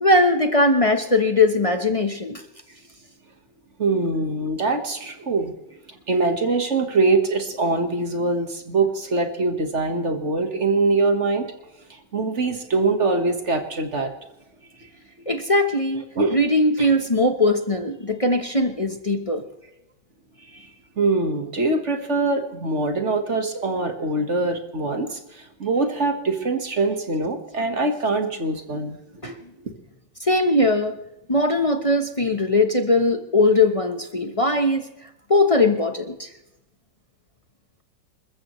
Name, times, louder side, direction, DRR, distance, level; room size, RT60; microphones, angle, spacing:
voice 1, 0.0-2.4 15.3-16.0 16.3-19.4 29.2-29.3 30.2-31.0 31.3-34.9 35.3-36.3, left 2 dB, 30° left, 6 dB, 0.6 m, -20 dB
voice 2, 3.8-5.5 5.9-11.4 11.9-14.1 16.1-16.4 16.8-16.9 21.0-29.0 29.2-29.7, right 3 dB, 40° right, 6 dB, 1.6 m, -23 dB
27.5 x 14.0 x 3.1 m, 0.87 s
omnidirectional pair, 2.1 m